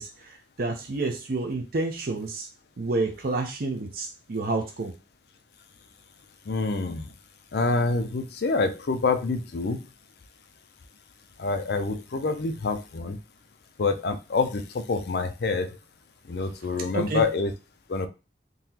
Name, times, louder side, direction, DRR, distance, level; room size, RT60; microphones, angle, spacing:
voice 1, 0.0-2.5 2.8-4.9 16.9-17.2, right 2 dB, 55° right, 4 dB, 0.6 m, -29 dB
voice 2, 6.5-7.1 7.5-9.8 11.4-13.2 13.8-15.8 16.3-17.5 17.9-18.1, left 3 dB, 60° left, 8 dB, 0.5 m, -27 dB
3.8 x 2.8 x 2.8 m, 0.29 s
head